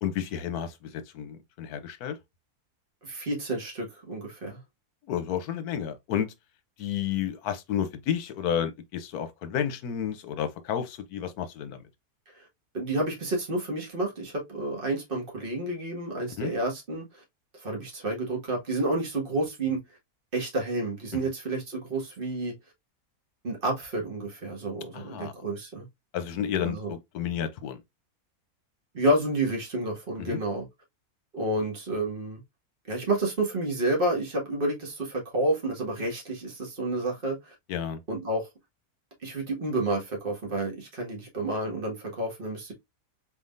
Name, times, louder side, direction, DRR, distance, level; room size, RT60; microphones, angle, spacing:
voice 1, 0.0-2.2 5.1-6.3 6.8-11.8 16.4-16.5 24.9-25.3 26.1-27.8 30.3-30.4 37.7-38.0, left 9 dB, 80° left, 1.3 m, -31 dB
voice 2, 3.0-4.6 12.7-17.2 17.6-19.8 20.3-22.5 23.4-25.9 26.6-26.9 28.9-30.7 31.3-32.4 32.9-37.5 38.1-38.5 39.2-42.7, right 2 dB, 35° right, 1.8 m, -30 dB
4.4 x 3.6 x 2.4 m
omnidirectional pair, 1.6 m